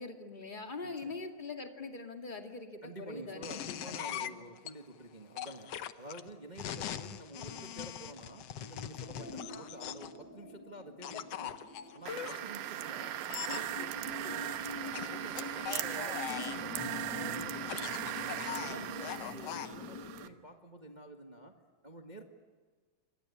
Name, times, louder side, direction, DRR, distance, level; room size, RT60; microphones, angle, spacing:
voice 1, 0.0-3.8 4.1-4.5 18.6-19.0, left 3 dB, 20° left, 3 dB, 1.6 m, -43 dB
voice 2, 0.8-1.2 2.8-11.6 11.9-17.8 18.3-21.5 21.8-22.2, right 1 dB, 70° right, 3 dB, 0.4 m, -49 dB
sound 1, 3.4-4.7 5.4-10.2 11.0-12.4 13.3-13.7 14.9-16.7 17.5-19.7, left 10 dB, 80° left, 1.4 m, -41 dB
sound 2, 8.9-20.3, left 3 dB, 40° left, 2.0 m, -46 dB
sound 3, 12.1-20.3, right 12 dB, 85° right, 2.9 m, -39 dB
28.0 x 24.5 x 8.6 m, 1.4 s
omnidirectional pair, 4.2 m